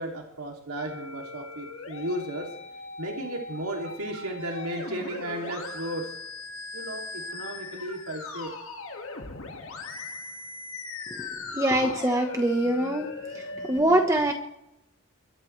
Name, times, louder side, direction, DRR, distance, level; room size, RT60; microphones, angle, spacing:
voice 1, 0.0-2.5 3.0-6.1 6.7-8.5, right 1 dB, 85° right, 0 dB, 3.0 m, -34 dB
Musical instrument, 0.8-13.8, left 3 dB, 65° left, 2.2 m, -39 dB
voice 2, 11.5-13.1 13.7-14.3, right 1 dB, 15° right, 3 dB, 1.3 m, -23 dB
23.5 x 14.5 x 3.4 m, 0.83 s
head